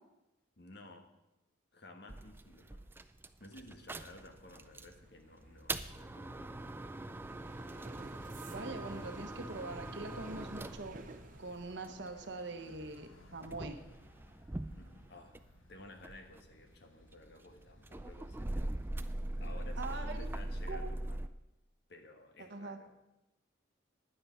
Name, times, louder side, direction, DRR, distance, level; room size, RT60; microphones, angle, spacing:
voice 1, 0.6-1.1 1.7-2.9 3.4-6.8 14.7-18.8 19.4-21.3 21.9-22.9, left 2 dB, 55° left, 5 dB, 1.4 m, -55 dB
sound 1, 2.1-5.0 5.4-12.2 12.9-15.6 15.9-21.3, right 1 dB, 10° right, 0.3 m, -42 dB
sound 2, 2.7-17.4 17.7-18.1 18.4-18.8, right 3 dB, 45° right, 0.8 m, -56 dB
sound 3, 3.4-20.7, left 2 dB, 85° left, 1.2 m, -63 dB
voice 2, 8.5-11.0 11.4-13.8 19.8-20.3 20.7-20.9 22.4-22.8, right 3 dB, 60° right, 6 dB, 1.1 m, -43 dB
10.0 x 9.7 x 5.8 m, 0.97 s
head